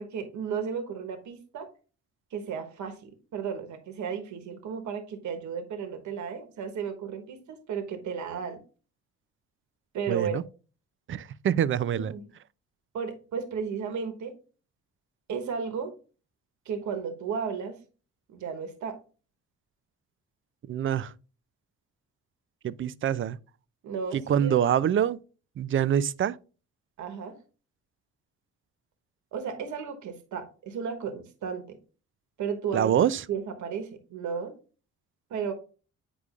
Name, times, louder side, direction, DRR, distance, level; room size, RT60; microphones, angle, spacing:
voice 1, 0.0-1.7 2.3-8.6 9.9-10.3 11.9-12.3 12.9-14.3 15.3-15.9 16.6-17.8 18.3-19.0 23.8-24.6 27.0-27.4 29.3-31.8 32.4-32.9 33.3-34.5 35.3-35.5, right 6 dB, 75° right, 1.2 m, -34 dB
voice 2, 10.1-10.4 11.1-12.1 20.7-21.1 22.6-23.4 24.1-25.2 25.6-26.4 32.7-33.2, right 9 dB, 45° right, 0.4 m, -25 dB
8.2 x 4.9 x 2.5 m
cardioid pair, 90°, 30 cm